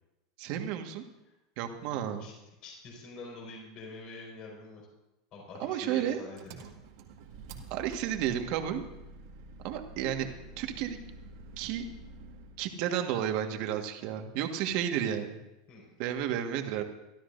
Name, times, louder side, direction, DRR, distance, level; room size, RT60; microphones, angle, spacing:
voice 1, 0.4-1.0 1.6-2.3 5.6-6.2 7.7-8.8 9.6-10.3 10.6-11.0 11.6-11.8 12.6-15.4 16.0-16.8, right 10 dB, 55° right, 5 dB, 1.6 m, -32 dB
voice 2, 1.8-2.3 2.6-4.8 5.3-6.7 15.7-15.9, left 3 dB, 45° left, -1 dB, 5.2 m, -46 dB
Engine, 6.3-12.6, right 3 dB, 75° right, 1.8 m, -48 dB
24.0 x 12.5 x 2.7 m, 0.98 s
supercardioid pair, 120°, 2 cm